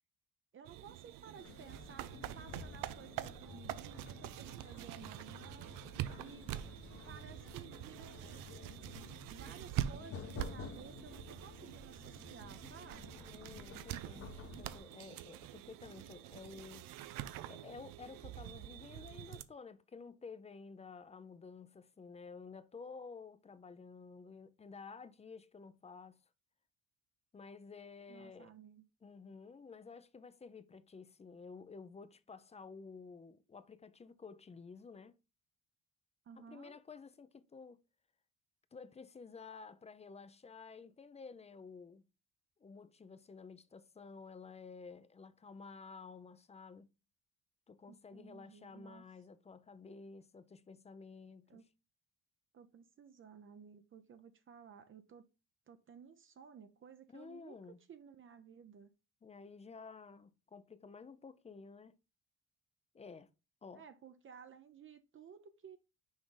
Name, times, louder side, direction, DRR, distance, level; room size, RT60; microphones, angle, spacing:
voice 1, 0.5-5.8 6.2-6.7 7.1-8.6 9.3-13.2 28.1-28.8 36.3-36.8 47.9-49.0 51.5-51.6 52.5-55.2 55.7-58.9 63.7-65.8, right 7 dB, 40° right, 0.7 m, -56 dB
sound 1, 0.6-19.4, right 12 dB, 85° right, 0.6 m, -45 dB
sound 2, 1.4-14.8, left 5 dB, 45° left, 1.0 m, -52 dB
voice 2, 13.3-16.9 17.5-26.2 27.3-28.5 29.0-35.2 36.4-37.8 38.7-42.1 42.6-46.9 47.7-51.6 57.1-57.8 59.2-62.0 62.9-63.3 63.6-63.8, left 5 dB, 20° left, 0.5 m, -52 dB
6.2 x 4.8 x 3.8 m
cardioid pair, 125°, 32 cm